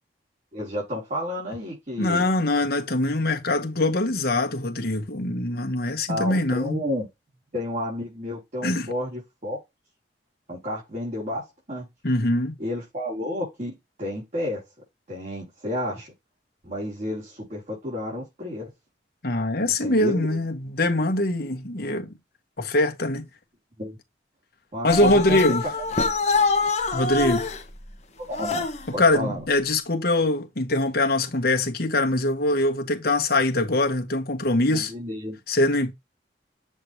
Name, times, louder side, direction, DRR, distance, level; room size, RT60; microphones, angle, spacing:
voice 1, 0.5-2.3 6.1-7.1 7.5-9.6 10.5-11.9 12.6-14.6 15.1-16.1 16.6-18.7 19.7-20.4 23.8-24.0 24.7-25.5 28.2-28.6 28.9-29.4 34.6-35.4, left 1 dB, 45° right, 4.2 m, -31 dB
voice 2, 2.0-6.8 8.6-8.9 12.0-12.6 19.2-22.1 22.6-23.3 24.8-25.6 26.9-27.5 29.0-34.9 35.5-35.9, left 2 dB, 60° left, 1.5 m, -23 dB
sound 1, 24.9-27.6 28.3-28.9, left 3 dB, 40° left, 1.3 m, -24 dB
7.8 x 3.9 x 3.2 m
head